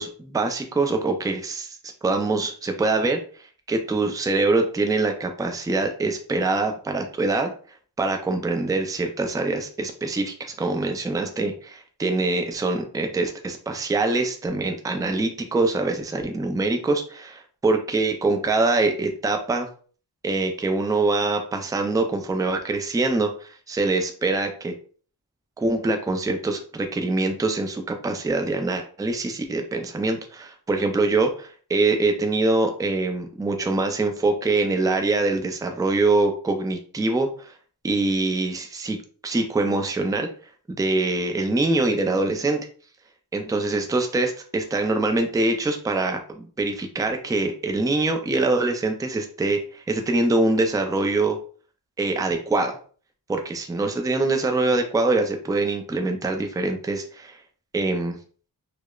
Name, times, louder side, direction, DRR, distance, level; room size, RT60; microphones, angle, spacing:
voice 1, 0.0-1.8 2.0-3.2 3.7-7.5 8.0-19.7 20.2-24.7 25.6-37.5 37.8-39.0 39.2-40.3 40.7-42.7 43.3-51.4 52.0-52.8 53.3-57.4 57.7-58.2, right 2 dB, 10° right, 5 dB, 0.4 m, -24 dB
4.8 x 2.1 x 2.3 m, 0.42 s
wide cardioid pair, 105°, 40 cm